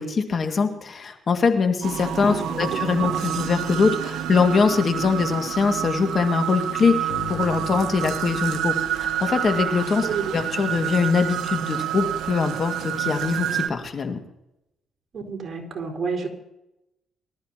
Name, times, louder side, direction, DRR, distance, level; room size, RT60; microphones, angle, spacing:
voice 1, 0.0-14.2, left 5 dB, 45° left, 5 dB, 2.0 m, -23 dB
sound 1, 1.8-13.7, right 11 dB, 80° right, 0.7 m, -28 dB
Bass guitar, 7.1-10.2, left 9 dB, 80° left, 3.6 m, -40 dB
voice 2, 10.0-10.3 15.1-16.3, right 5 dB, 45° right, 0 dB, 4.7 m, -29 dB
24.0 x 13.5 x 2.9 m, 0.89 s
cardioid pair, 90°, 0 cm